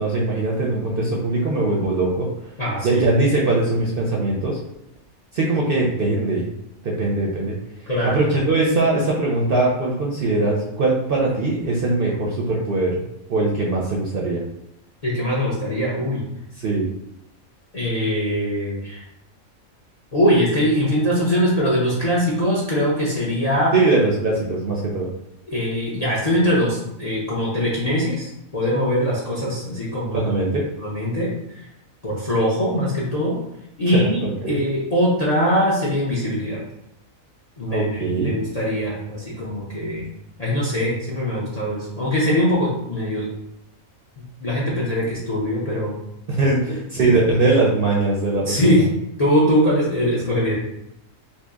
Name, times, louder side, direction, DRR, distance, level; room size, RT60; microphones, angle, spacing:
voice 1, 0.0-2.3 2.8-4.6 5.3-6.5 6.8-7.5 8.0-13.0 13.3-14.4 16.6-16.8 23.7-25.1 30.1-30.6 33.9-34.6 37.7-38.3 46.3-48.8, right 2 dB, 60° right, -3 dB, 0.6 m, -21 dB
voice 2, 2.6-3.0 7.9-8.2 15.0-16.2 17.7-19.0 20.1-23.7 25.5-30.2 30.8-31.3 31.6-31.7 32.0-33.4 33.8-36.6 37.6-40.0 40.4-43.3 44.2-45.9 48.4-48.9 49.2-50.5, equal, 45° left, -6 dB, 0.5 m, -22 dB
2.8 x 2.7 x 3.5 m, 0.82 s
omnidirectional pair, 1.4 m